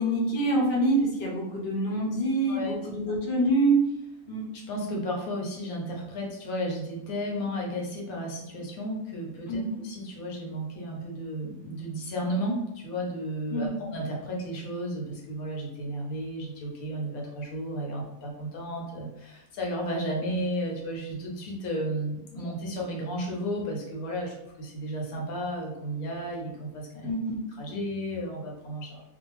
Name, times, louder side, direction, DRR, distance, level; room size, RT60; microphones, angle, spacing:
voice 1, 0.0-3.8 4.3-4.5 9.5-9.8 13.5-13.9 27.0-27.4, right 2 dB, 55° left, -2 dB, 0.8 m, -26 dB
voice 2, 4.5-27.1 27.6-29.0, equal, 75° left, -1 dB, 1.1 m, -33 dB
2.6 x 2.3 x 3.0 m, 0.88 s
omnidirectional pair, 1.6 m